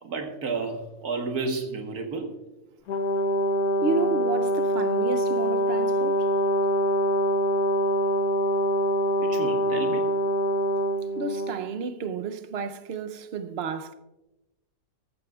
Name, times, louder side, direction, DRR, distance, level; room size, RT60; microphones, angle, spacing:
voice 1, 0.0-2.3 9.2-10.1, right 4 dB, 80° right, 1.7 m, -31 dB
Brass instrument, 2.9-11.6, equal, 75° left, 1.4 m, -24 dB
voice 2, 3.8-6.3 11.2-13.9, right 4 dB, 50° right, 0.8 m, -31 dB
14.5 x 14.0 x 2.4 m
omnidirectional pair, 1.6 m